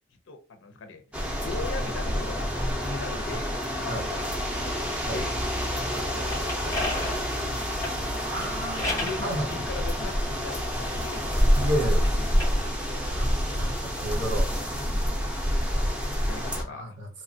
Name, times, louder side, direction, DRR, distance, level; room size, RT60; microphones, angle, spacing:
voice 1, 0.3-1.0 1.4-2.5 2.8-4.3 5.1-5.4 5.9-7.2 7.5-7.9 9.0-11.3 11.6-11.9 12.1-12.5 14.7-15.1 16.3-17.0, left 3 dB, 80° left, 0.5 m, -39 dB
sound 1, 1.1-16.6, equal, 5° right, 0.5 m, -27 dB
sound 2, 6.3-9.3 10.0-11.7 12.2-14.5, left 2 dB, 15° left, 0.8 m, -36 dB
voice 2, 8.0-9.5 11.5-12.0 13.1-14.5 16.7-17.1, right 1 dB, 65° right, 0.8 m, -32 dB
3.1 x 2.2 x 2.6 m
head